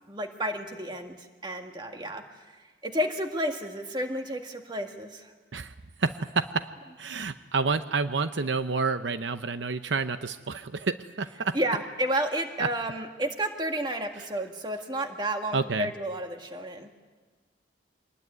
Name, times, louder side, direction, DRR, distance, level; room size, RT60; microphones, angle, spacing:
voice 1, 0.1-2.2 2.8-5.3 11.5-16.9, right 1 dB, 25° right, 4 dB, 1.9 m, -31 dB
voice 2, 6.0-6.7 7.0-11.6 12.6-12.7 15.5-15.9, right 4 dB, 80° right, 10 dB, 0.8 m, -29 dB
24.5 x 20.0 x 9.6 m, 1.4 s
head